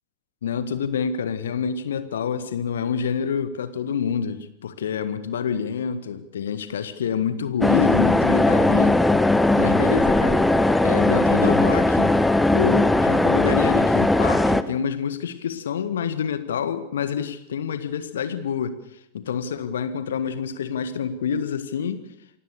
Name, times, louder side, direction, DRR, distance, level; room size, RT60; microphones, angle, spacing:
voice 1, 0.4-9.0 9.6-10.5 10.8-12.2 12.5-18.8 19.1-22.0, left 7 dB, 65° left, 12 dB, 1.7 m, -27 dB
sound 1, 7.6-14.6, left 2 dB, 5° left, 1.1 m, -19 dB
28.0 x 17.5 x 6.8 m, 0.83 s
figure-of-eight pair, 90°, 0 cm